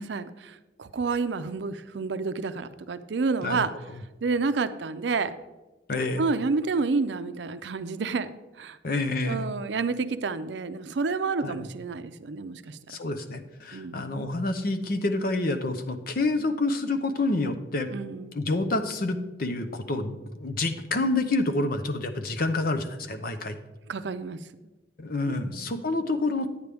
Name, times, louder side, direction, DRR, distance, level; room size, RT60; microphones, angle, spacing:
voice 1, 0.0-3.7 4.2-5.3 6.2-8.3 8.6-8.8 9.3-12.8 13.7-14.1 17.9-18.4 23.9-24.4 25.3-25.7, right 4 dB, 75° right, 12 dB, 0.5 m, -29 dB
voice 2, 3.4-4.0 5.9-6.2 8.8-9.5 11.4-11.7 12.9-17.9 18.3-23.6 25.0-26.5, left 2 dB, 55° left, 8 dB, 0.8 m, -28 dB
9.6 x 9.2 x 3.4 m, 1.1 s
head